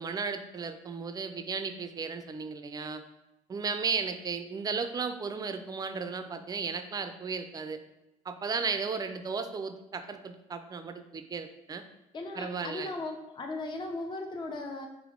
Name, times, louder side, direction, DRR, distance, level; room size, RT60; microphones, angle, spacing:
voice 1, 0.0-3.0 3.5-7.8 8.3-11.8 12.4-12.9, right 5 dB, 25° right, 9 dB, 0.4 m, -35 dB
voice 2, 12.1-14.9, left 2 dB, 35° left, 3 dB, 0.5 m, -37 dB
3.5 x 3.2 x 3.7 m, 0.93 s
cardioid pair, 90°, 14 cm